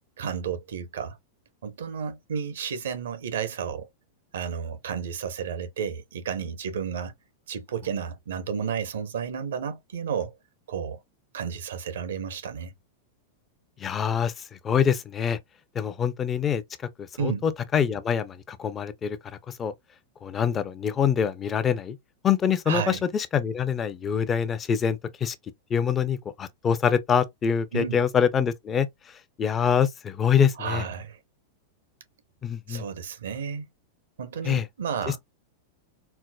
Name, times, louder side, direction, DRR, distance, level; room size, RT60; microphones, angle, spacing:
voice 1, 0.2-1.2 1.6-3.9 4.3-7.1 7.5-10.3 10.7-11.0 11.3-12.7 17.2-17.4 22.7-23.0 27.7-28.0 30.6-31.2 32.7-33.7 34.2-35.2, right 7 dB, 85° right, 0.8 m, -32 dB
voice 2, 13.8-15.4 15.7-16.6 17.0-19.2 19.5-19.7 20.2-22.0 22.2-25.4 25.7-28.9 29.4-30.8 32.4-32.8 34.4-34.6, left 7 dB, 25° left, 0.5 m, -25 dB
4.4 x 2.1 x 2.2 m
hypercardioid pair, 130°, 0 cm